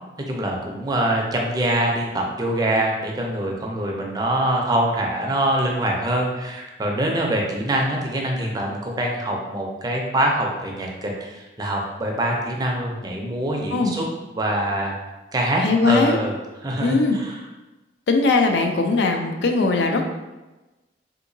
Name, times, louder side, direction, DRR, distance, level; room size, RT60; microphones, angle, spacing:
voice 1, 0.3-14.1 14.3-15.0 15.3-16.3 16.6-17.4, right 1 dB, 20° right, 0 dB, 0.4 m, -24 dB
voice 2, 15.6-16.2 16.8-17.2 18.1-20.0, left 3 dB, 75° left, 4 dB, 0.4 m, -20 dB
3.5 x 2.8 x 2.6 m, 1.1 s
head